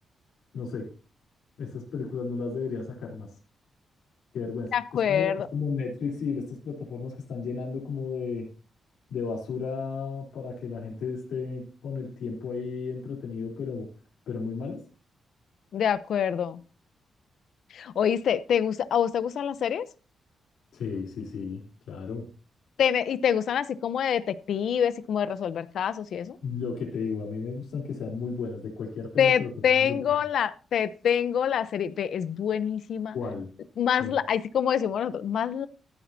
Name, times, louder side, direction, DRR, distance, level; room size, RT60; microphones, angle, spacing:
voice 1, 0.5-0.9 1.6-3.3 4.3-8.5 9.1-13.9 14.3-14.8 20.7-22.3 26.4-29.5 29.8-30.0 33.1-33.5 34.0-34.1, left 5 dB, 90° left, -2 dB, 3.3 m, -33 dB
voice 2, 4.7-5.5 15.7-16.6 17.7-19.9 22.8-26.4 29.2-33.2 33.8-35.7, left 8 dB, 70° left, 15 dB, 0.7 m, -26 dB
14.0 x 10.0 x 2.7 m, 0.34 s
cardioid pair, 120°, 0 cm